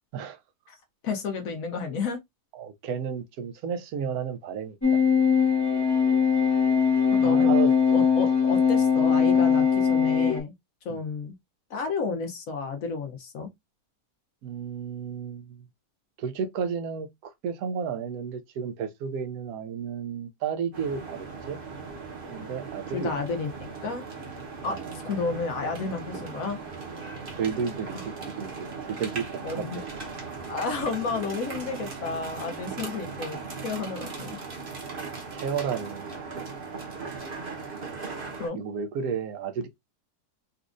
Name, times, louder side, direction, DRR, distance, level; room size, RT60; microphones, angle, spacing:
voice 1, 1.0-2.2 7.1-7.5 7.9-10.5 10.8-11.3 11.7-13.5 22.9-24.0 24.6-26.6 27.9-28.0 29.4-29.8 30.5-34.4 38.4-38.6, left 4 dB, 60° left, 1.2 m, -32 dB
voice 2, 2.5-5.0 7.2-7.7 10.9-11.0 14.4-15.6 16.2-21.6 22.3-23.2 24.7-24.9 27.4-29.8 35.3-36.1 38.5-39.7, right 7 dB, 70° right, 1.1 m, -32 dB
sound 1, 4.8-10.4, left 6 dB, 15° left, 0.6 m, -21 dB
sound 2, 20.7-38.5, right 4 dB, 40° right, 1.0 m, -38 dB
4.1 x 2.4 x 2.5 m
omnidirectional pair, 1.7 m